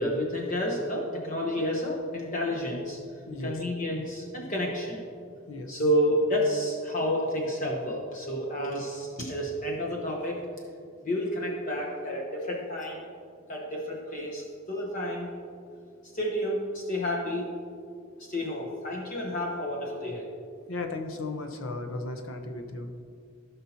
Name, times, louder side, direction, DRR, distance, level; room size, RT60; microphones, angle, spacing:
voice 1, 0.0-3.0 3.4-5.0 5.7-10.4 11.0-13.0 13.5-15.3 16.1-17.5 18.2-20.3, equal, 35° left, -2 dB, 1.0 m, -30 dB
voice 2, 3.3-3.6 5.5-5.8 8.7-8.8 20.7-23.0, left 2 dB, 70° left, 5 dB, 0.9 m, -36 dB
16.5 x 5.6 x 2.9 m, 2.3 s
head